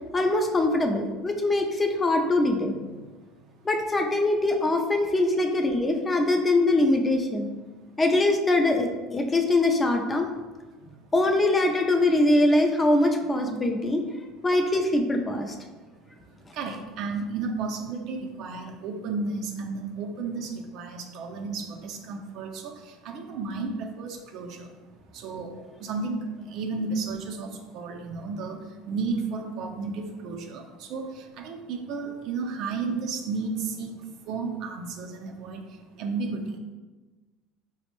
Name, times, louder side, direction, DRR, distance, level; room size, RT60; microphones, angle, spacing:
voice 1, 0.1-2.8 3.6-7.5 8.0-10.3 11.1-14.0 14.4-15.5, left 2 dB, 20° left, 4 dB, 0.4 m, -23 dB
voice 2, 16.5-24.7 25.1-25.5 25.8-33.9 34.3-35.7 36.0-36.6, right 4 dB, 60° right, 3 dB, 0.5 m, -33 dB
4.2 x 2.0 x 3.0 m, 1.3 s
supercardioid pair, 115°, 0 cm